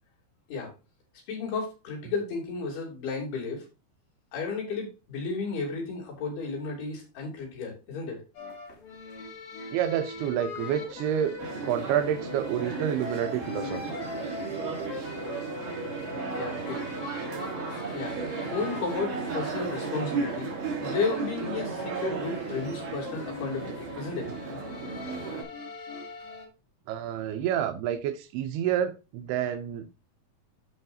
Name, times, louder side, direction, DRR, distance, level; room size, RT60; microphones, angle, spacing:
voice 1, 1.3-3.6 4.3-8.2 16.4-17.1 17.9-20.5 20.8-24.3, left 4 dB, 80° left, 5.0 m, -33 dB
sound 1, 8.3-26.5, left 4 dB, 50° left, 3.1 m, -42 dB
voice 2, 9.7-11.4 11.6-14.0 26.9-30.0, right 10 dB, 85° right, 2.8 m, -29 dB
sound 2, 11.4-25.4, right 4 dB, 60° right, 3.7 m, -35 dB
14.5 x 4.9 x 2.7 m
omnidirectional pair, 4.5 m